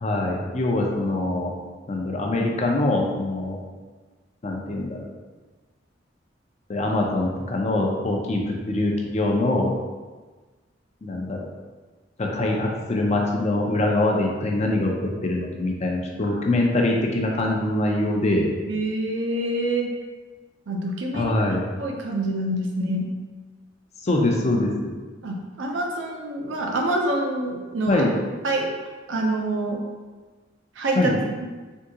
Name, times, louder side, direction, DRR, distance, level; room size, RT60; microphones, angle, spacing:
voice 1, 0.0-1.5 1.9-3.6 4.4-5.1 6.7-9.7 11.0-11.4 12.2-14.9 15.2-18.5 21.1-21.7 24.0-24.9 27.9-28.1 31.0-31.2, left 2 dB, 35° left, 0 dB, 0.5 m, -23 dB
voice 2, 18.7-19.9 20.7-23.1 25.2-28.0 28.4-28.7 29.1-29.8 30.8-31.1 31.4-31.5, right 1 dB, 80° right, 0 dB, 0.6 m, -26 dB
3.6 x 2.7 x 2.8 m, 1.3 s
head